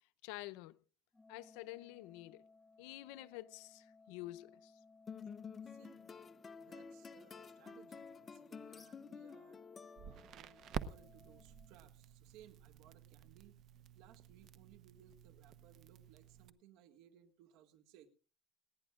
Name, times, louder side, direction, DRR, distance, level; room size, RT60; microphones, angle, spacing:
voice 1, 0.2-0.8 1.3-2.4 2.8-4.7, left 17 dB, 85° left, 0.6 m, -49 dB
Organ, 1.1-12.2, left 3 dB, 5° left, 1.5 m, -65 dB
sound 1, 5.1-10.5, left 6 dB, 25° left, 0.6 m, -51 dB
voice 2, 5.6-6.0 6.5-9.6 10.0-13.6 13.9-18.1, right 10 dB, 70° right, 1.7 m, -64 dB
Crackle, 10.0-16.5, right 8 dB, 50° right, 0.9 m, -50 dB
30.0 x 10.0 x 2.4 m
cardioid pair, 140°, 0 cm